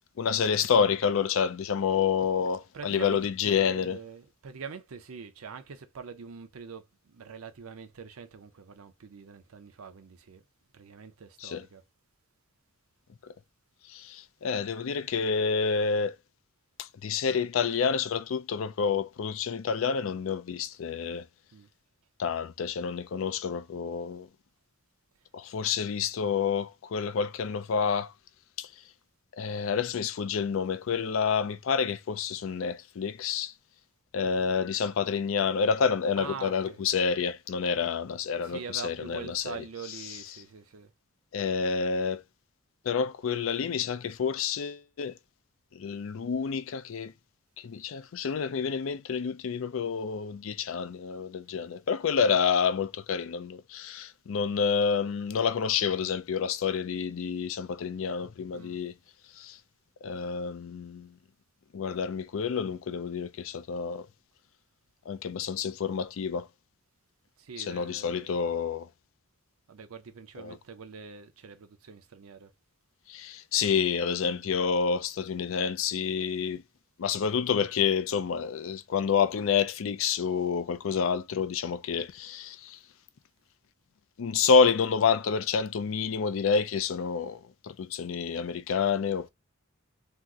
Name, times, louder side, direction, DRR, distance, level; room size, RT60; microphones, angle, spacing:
voice 1, 0.2-4.0 11.4-11.6 13.9-16.1 16.8-21.3 22.2-24.3 25.3-28.1 28.6-28.7 29.4-33.5 34.1-39.6 40.1-40.2 41.3-42.2 42.9-45.2 45.7-47.1 47.6-58.9 59.4-59.6 60.0-61.1 61.7-64.1 65.1-66.5 67.6-68.9 70.4-70.6 73.1-76.6 77.0-82.8 84.2-89.3, left 6 dB, 65° left, 0.4 m, -28 dB
voice 2, 2.7-3.2 3.4-10.4 10.7-11.8 21.5-21.7 34.2-34.5 36.2-36.8 38.4-40.9 51.5-51.7 58.5-58.8 67.4-68.5 69.7-72.5 74.2-74.4, right 5 dB, 90° right, 0.6 m, -44 dB
2.8 x 2.0 x 3.5 m
head